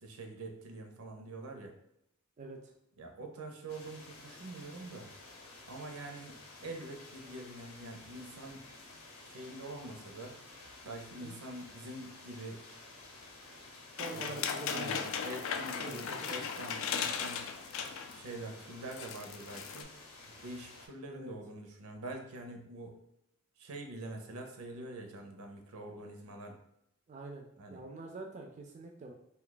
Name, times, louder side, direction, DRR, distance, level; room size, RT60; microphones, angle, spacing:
voice 1, 0.0-1.7 3.0-5.1 5.7-8.7 9.2-10.4 10.8-12.6 14.1-14.4 14.7-17.5 18.1-19.9 20.4-23.0 23.6-26.6 27.6-27.8, right 2 dB, 85° right, 3 dB, 0.6 m, -45 dB
voice 2, 2.4-2.7 11.2-11.3 14.0-15.0 15.8-16.3 21.1-21.3 27.1-29.1, right 3 dB, 35° right, 2 dB, 0.3 m, -45 dB
sound 1, 3.7-20.9, left 2 dB, 85° left, 0.7 m, -53 dB
sound 2, 14.0-18.2 18.6-18.7 18.9-19.8, left 7 dB, 65° left, 0.3 m, -37 dB
2.6 x 2.3 x 3.8 m, 0.79 s
head